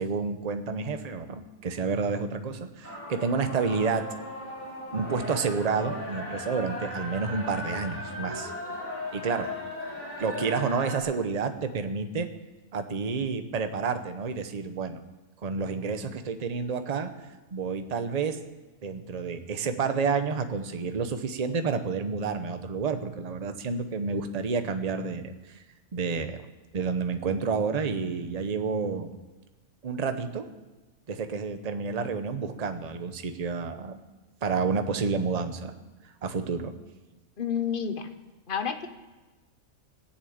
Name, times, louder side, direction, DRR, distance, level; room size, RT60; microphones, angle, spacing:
voice 1, 0.0-4.0 4.9-8.5 9.1-9.5 10.2-12.3 12.7-15.0 15.4-17.1 17.5-18.4 18.8-25.3 25.9-26.4 26.7-29.1 29.8-30.5 31.1-34.0 34.4-35.7 36.2-36.7, right 5 dB, 35° right, 8 dB, 0.8 m, -29 dB
sound 1, 2.8-11.0, left 1 dB, 10° left, 4.0 m, -37 dB
voice 2, 37.4-38.1 38.5-38.9, left 7 dB, 40° left, 9 dB, 1.0 m, -29 dB
16.0 x 7.3 x 8.6 m, 1.2 s
omnidirectional pair, 1.5 m